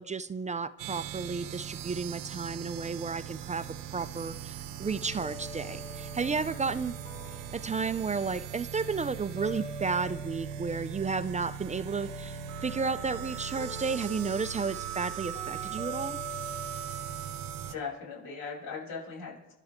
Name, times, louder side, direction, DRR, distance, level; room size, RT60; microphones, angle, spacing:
voice 1, 0.0-3.7 3.9-6.9 7.5-16.2, right 4 dB, 20° right, 13 dB, 0.5 m, -32 dB
sound 1, 0.8-17.8, right 10 dB, 75° right, 1.0 m, -39 dB
sound 2, 4.8-10.8 11.0-18.8, left 4 dB, 25° left, 2.9 m, -47 dB
voice 2, 17.7-19.5, left 5 dB, 90° left, -4 dB, 7.7 m, -39 dB
26.0 x 12.0 x 3.7 m, 0.96 s
cardioid pair, 95°, 33 cm